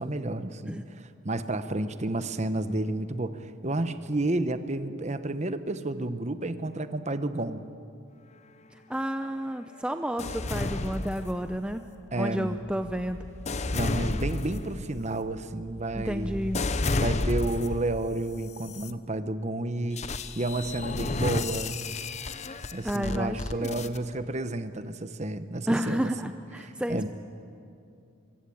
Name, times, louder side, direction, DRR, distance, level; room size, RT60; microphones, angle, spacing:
voice 1, 0.0-7.7 12.1-12.6 13.7-16.4 16.9-20.0 20.3-21.8 22.7-26.3 26.6-27.1, right 2 dB, 35° right, 11 dB, 1.0 m, -31 dB
voice 2, 8.9-11.8 12.2-13.2 16.0-16.7 22.8-23.9 25.7-27.1, equal, 5° right, 7 dB, 0.6 m, -31 dB
sound 1, 10.2-11.8 12.4-17.9 18.5-18.9 20.0-24.0, left 2 dB, 35° left, 0.8 m, -32 dB
24.0 x 22.0 x 8.7 m, 2.5 s
head